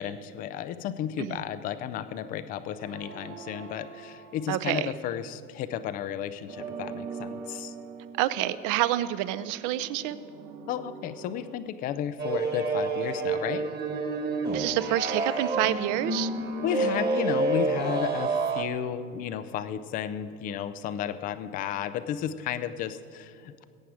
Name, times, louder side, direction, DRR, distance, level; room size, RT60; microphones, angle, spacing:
voice 1, 0.0-7.7 10.7-13.6 16.6-23.6, left 9 dB, 20° left, 12 dB, 0.3 m, -33 dB
sound 1, 2.8-5.3 6.5-11.6, right 5 dB, 65° right, 1.5 m, -43 dB
voice 2, 4.5-4.9 8.2-10.2 14.5-16.3, right 14 dB, 40° right, 15 dB, 0.6 m, -28 dB
sound 2, 12.2-18.6, right 3 dB, 20° right, 1.4 m, -28 dB
21.0 x 8.9 x 4.9 m, 2.4 s
hypercardioid pair, 95°, 49 cm